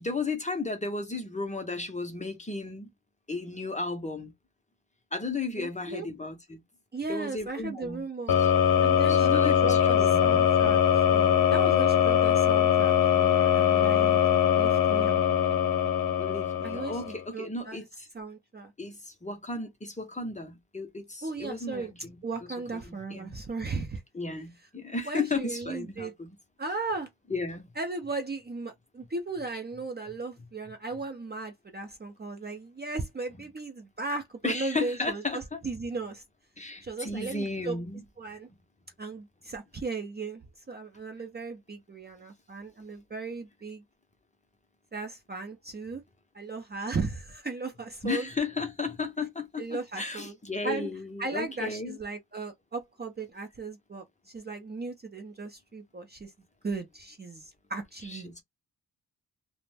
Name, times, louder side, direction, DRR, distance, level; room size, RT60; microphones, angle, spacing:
voice 1, 0.0-2.9 3.3-4.3 5.1-6.6 7.1-8.0 8.4-8.5 9.1-10.4 16.2-18.1 18.8-22.2 22.7-23.4 24.1-26.4 27.3-27.6 34.4-35.6 36.6-38.0 48.0-52.0 58.0-58.4, left 3 dB, 20° left, 0.6 m, -34 dB
voice 2, 5.6-6.1 6.9-8.4 8.8-15.2 16.6-17.8 18.1-18.7 21.2-21.9 22.2-24.0 25.0-26.1 26.6-27.1 27.8-36.2 36.8-37.8 38.2-38.5 39.0-43.8 44.9-46.0 46.3-48.3 49.6-50.3 50.6-50.9 51.2-56.3 56.6-58.4, right 3 dB, 25° right, 0.5 m, -36 dB
sound 1, 8.3-17.2, left 9 dB, 65° left, 0.7 m, -22 dB
2.5 x 2.1 x 3.2 m
wide cardioid pair, 150°, 38 cm